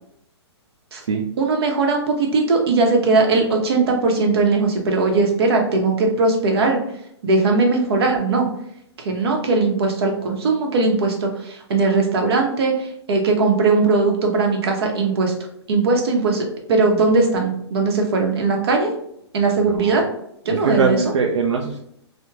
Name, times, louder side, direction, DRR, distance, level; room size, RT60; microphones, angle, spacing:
voice 1, 1.4-6.8 7.2-8.5 9.0-15.3 15.7-18.9 19.3-20.0 20.5-21.0, right 3 dB, 60° right, 2 dB, 0.7 m, -19 dB
voice 2, 19.6-20.0 20.5-21.8, right 5 dB, 85° right, 1 dB, 0.4 m, -21 dB
3.0 x 2.1 x 2.3 m, 0.72 s
hypercardioid pair, 145°, 15 cm